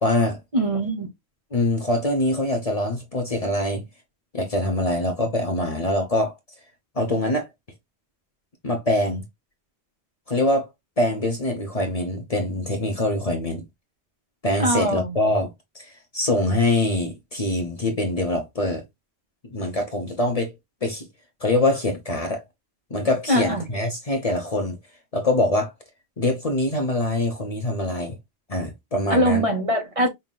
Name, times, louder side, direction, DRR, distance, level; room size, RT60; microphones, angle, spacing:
voice 1, 0.0-0.4 1.5-3.9 4.3-6.3 7.0-7.5 8.6-9.2 10.3-10.7 11.0-13.6 14.4-15.8 16.1-18.8 19.4-20.5 20.8-21.1 21.4-22.4 22.9-24.8 25.1-25.7 26.2-28.2 28.5-29.5, left 1 dB, 35° left, 0.9 m, -24 dB
voice 2, 0.5-1.1 14.6-15.2 23.3-23.7 29.1-30.1, right 1 dB, 35° right, 0.8 m, -22 dB
5.6 x 2.8 x 2.2 m
omnidirectional pair, 1.1 m